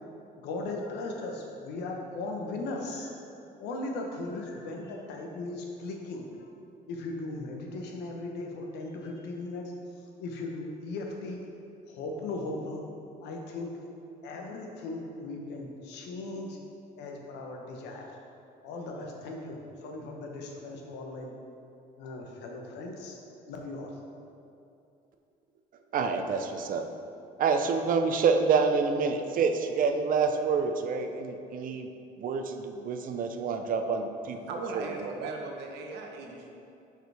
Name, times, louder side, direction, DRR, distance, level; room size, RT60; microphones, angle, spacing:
voice 1, 0.4-3.1 3.6-6.5 6.9-9.7 10.2-11.4 11.9-12.9 13.2-13.7 14.2-16.6 17.0-18.2 18.6-21.3 22.0-23.2 23.5-23.9, left 2 dB, 85° left, 1 dB, 1.0 m, -37 dB
voice 2, 25.9-26.9 27.4-31.9 32.2-34.4 34.7-35.3, right 5 dB, 55° right, 6 dB, 0.6 m, -27 dB
voice 3, 34.5-36.5, right 3 dB, 85° right, 1 dB, 0.9 m, -38 dB
7.8 x 4.9 x 3.4 m, 2.7 s
cardioid pair, 110°, 17 cm